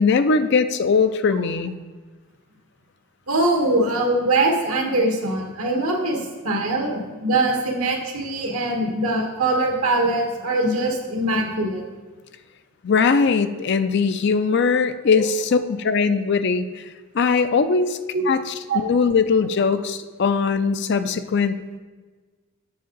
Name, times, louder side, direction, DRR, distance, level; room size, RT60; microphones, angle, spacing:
voice 1, 0.0-1.8 12.8-16.8 17.1-18.0 18.3-21.6, left 5 dB, 50° left, 11 dB, 0.4 m, -20 dB
voice 2, 3.3-11.8 15.1-15.2 17.7-17.8 18.1-18.2 18.7-18.8, right 2 dB, 75° right, 1 dB, 1.5 m, -22 dB
7.8 x 6.6 x 3.9 m, 1.4 s
head